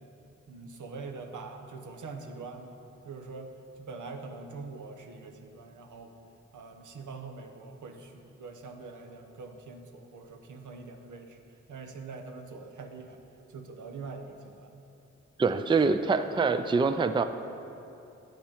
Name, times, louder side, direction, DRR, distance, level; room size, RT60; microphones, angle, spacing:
voice 1, 0.5-6.1 6.5-11.4 11.7-13.2 13.5-14.8, right 4 dB, 80° right, 5 dB, 0.9 m, -44 dB
voice 2, 15.4-17.2, right 4 dB, 15° right, 10 dB, 0.4 m, -25 dB
8.7 x 8.0 x 5.0 m, 2.8 s
cardioid pair, 60°, 30 cm